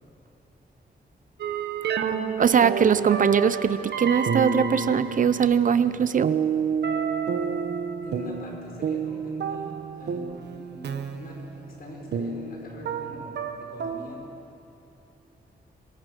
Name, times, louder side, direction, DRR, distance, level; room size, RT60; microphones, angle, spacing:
sound 1, 1.4-14.1, right 6 dB, 85° right, 1.2 m, -30 dB
voice 1, 2.4-6.3, right 7 dB, 50° right, 14 dB, 0.6 m, -21 dB
voice 2, 8.0-14.2, left 1 dB, 60° left, 0 dB, 4.9 m, -43 dB
23.5 x 21.0 x 6.6 m, 2.9 s
wide cardioid pair, 145°, 17 cm